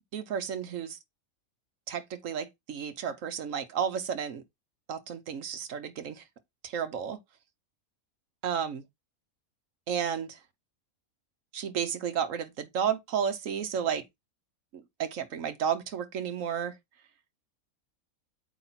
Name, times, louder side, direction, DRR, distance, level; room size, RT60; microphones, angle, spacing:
voice 1, 0.1-1.0 1.9-4.4 4.9-6.2 6.6-7.2 8.4-8.8 9.9-10.4 11.5-14.0 14.7-16.7, right 8 dB, 65° right, 1.2 m, -32 dB
8.4 x 2.9 x 5.6 m
omnidirectional pair, 1.5 m